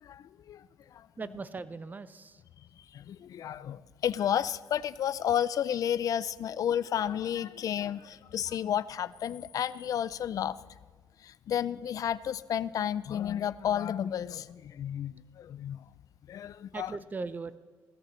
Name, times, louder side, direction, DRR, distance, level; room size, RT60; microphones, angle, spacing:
voice 1, 0.0-1.1 2.9-10.6 11.2-15.8 16.3-16.9, left 9 dB, 60° left, 18 dB, 0.4 m, -32 dB
voice 2, 1.2-2.4 16.7-17.6, right 4 dB, 25° right, 14 dB, 0.6 m, -39 dB
16.5 x 13.5 x 3.2 m, 1.5 s
cardioid pair, 95°, 7 cm